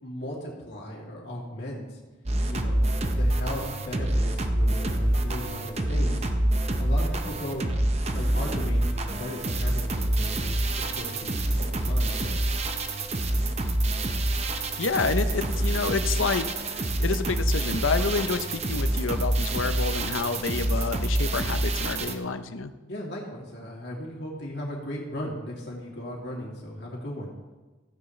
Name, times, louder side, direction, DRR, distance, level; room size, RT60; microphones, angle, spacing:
voice 1, 0.0-2.0 2.5-6.3 6.8-7.6 8.1-12.5 22.9-27.3, left 1 dB, 55° left, -3 dB, 2.7 m, -37 dB
sound 1, 2.3-22.2, right 1 dB, 30° right, 0.7 m, -26 dB
voice 2, 14.8-22.7, left 4 dB, 80° left, 10 dB, 0.7 m, -29 dB
15.0 x 9.7 x 3.2 m, 1.2 s
head